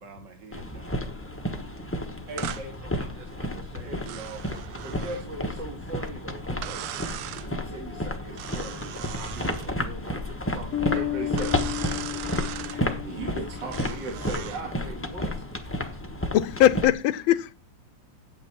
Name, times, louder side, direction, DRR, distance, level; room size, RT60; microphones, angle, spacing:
voice 1, 0.0-2.2 2.8-5.1, right 5 dB, 40° right, 2.0 m, -47 dB
sound 1, 0.5-16.9, left 1 dB, 15° left, 0.5 m, -32 dB
voice 2, 2.3-2.8 3.8-4.0 4.8-6.9 7.4-11.8 12.6-15.6, right 2 dB, 55° right, 2.6 m, -39 dB
sound 2, 2.4-2.7 4.1-5.3 6.6-7.5 8.4-9.7 11.4-12.8 13.7-14.6, right 12 dB, 90° right, 1.6 m, -38 dB
sound 3, 10.7-14.1, left 16 dB, 55° left, 0.8 m, -33 dB
voice 3, 16.3-17.5, left 12 dB, 75° left, 1.4 m, -21 dB
8.8 x 8.6 x 4.3 m
omnidirectional pair, 2.3 m